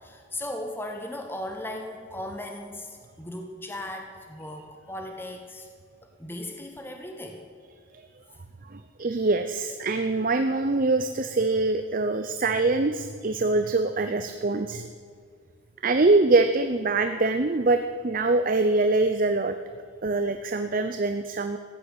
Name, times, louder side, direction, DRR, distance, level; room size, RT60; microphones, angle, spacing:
voice 1, 0.0-5.7 6.2-7.5, left 1 dB, 10° left, 3 dB, 1.1 m, -37 dB
voice 2, 8.7-14.8 15.8-19.6 20.0-21.6, right 3 dB, 45° right, 8 dB, 0.6 m, -24 dB
15.0 x 10.0 x 8.1 m, 2.2 s
head